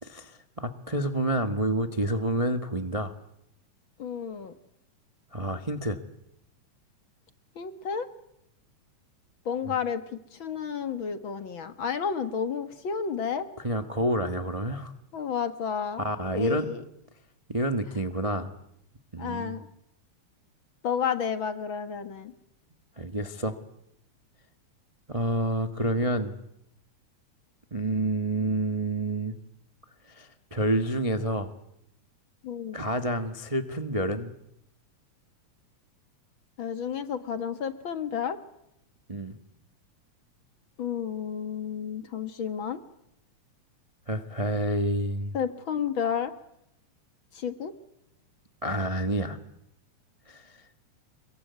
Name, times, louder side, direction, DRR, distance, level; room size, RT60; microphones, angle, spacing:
voice 1, 0.0-3.1 5.3-6.0 13.6-14.9 16.0-16.7 17.5-18.5 19.1-19.5 23.0-23.5 25.1-26.3 27.7-29.4 30.1-31.5 32.7-34.3 39.1-39.4 44.1-45.3 48.6-49.4 50.3-50.6, right 1 dB, 60° right, 7 dB, 0.3 m, -28 dB
voice 2, 4.0-4.5 7.6-8.1 9.5-10.0 10.3-13.5 15.1-16.0 16.4-16.8 19.2-19.7 20.8-22.3 32.4-32.9 36.6-38.4 40.8-42.8 45.3-46.3 47.3-47.7, left 7 dB, 50° left, 10 dB, 2.0 m, -31 dB
27.5 x 23.0 x 9.5 m, 0.79 s
omnidirectional pair, 3.4 m